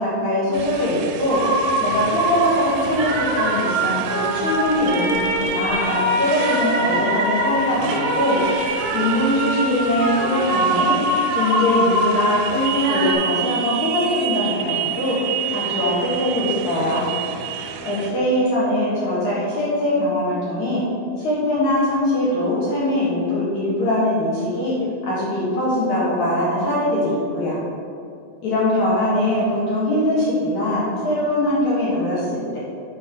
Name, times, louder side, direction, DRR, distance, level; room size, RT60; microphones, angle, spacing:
voice 1, 0.0-1.4 1.8-8.4 8.9-11.0 11.3-15.2 15.5-17.1 17.8-20.8 21.2-24.8 25.1-27.6 28.4-32.6, left 1 dB, 65° left, -8 dB, 1.9 m, -22 dB
Motorcycle, 0.5-18.1, right 9 dB, 90° right, 3.4 m, -31 dB
sound 1, 1.3-13.1, right 1 dB, 65° right, 2.6 m, -23 dB
9.7 x 4.3 x 6.0 m, 2.5 s
omnidirectional pair, 6.0 m